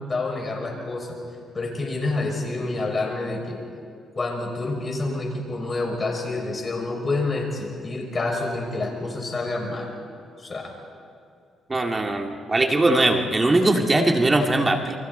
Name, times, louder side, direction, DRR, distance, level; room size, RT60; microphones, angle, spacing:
voice 1, 0.1-1.2 1.5-3.6 4.1-9.9 10.4-10.7, left 2 dB, 30° left, 0 dB, 6.2 m, -28 dB
voice 2, 11.7-15.0, right 2 dB, 25° right, 3 dB, 2.0 m, -20 dB
30.0 x 23.5 x 4.2 m, 2.5 s
cardioid pair, 90°, 0 cm